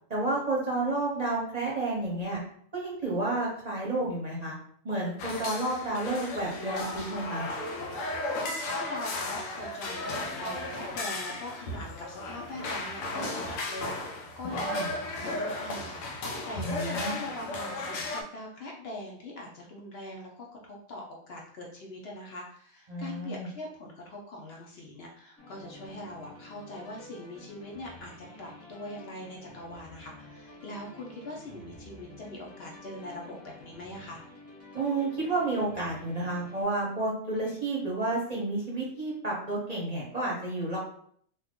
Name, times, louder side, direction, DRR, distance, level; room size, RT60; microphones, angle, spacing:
voice 1, 0.1-2.4 2.7-4.5 4.8-7.4 14.7-14.9 16.5-17.1 22.9-23.5 34.7-40.8, right 2 dB, 40° right, -4 dB, 0.6 m, -31 dB
sound 1, 5.2-18.2, left 2 dB, 85° left, 1.0 m, -35 dB
voice 2, 8.3-34.2, left 1 dB, 60° left, -1 dB, 0.8 m, -42 dB
sound 2, 25.4-36.6, left 1 dB, 20° left, 0.3 m, -50 dB
2.7 x 2.4 x 3.5 m, 0.63 s
omnidirectional pair, 1.3 m